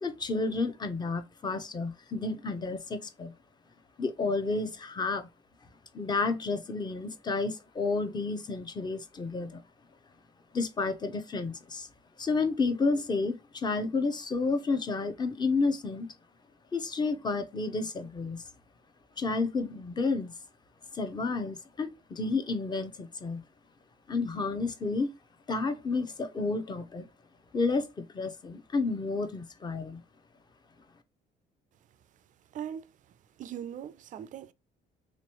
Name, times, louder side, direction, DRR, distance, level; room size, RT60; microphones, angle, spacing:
voice 1, 0.0-3.3 4.0-5.3 5.9-9.6 10.5-11.9 12.2-16.1 16.7-18.4 19.2-20.3 20.9-23.4 24.1-25.1 25.5-27.1 27.5-30.0, left 3 dB, 25° left, 0.7 m, -31 dB
voice 2, 32.5-32.9 33.4-34.5, right 9 dB, 50° right, 0.4 m, -40 dB
3.3 x 3.0 x 2.9 m
cardioid pair, 110°, 17 cm